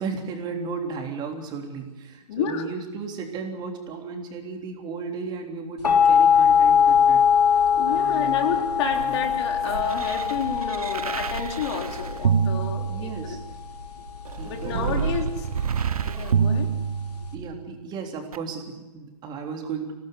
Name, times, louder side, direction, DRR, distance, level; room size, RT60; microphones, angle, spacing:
voice 1, 0.0-7.2 7.5-8.5 8.9-9.2 12.9-13.4 14.4-15.0 17.3-19.9, right 5 dB, 20° right, 2 dB, 3.5 m, -35 dB
voice 2, 2.3-2.7 7.8-13.4 14.4-15.5 16.0-16.7, left 7 dB, 45° left, 3 dB, 3.8 m, -30 dB
sound 1, 5.8-17.3, left 7 dB, 80° left, 4.1 m, -22 dB
sound 2, 8.6-13.5 14.3-17.6 18.3-18.4, right 7 dB, 65° right, 1.4 m, -28 dB
25.5 x 18.0 x 8.2 m, 1.1 s
figure-of-eight pair, 130°, 20 cm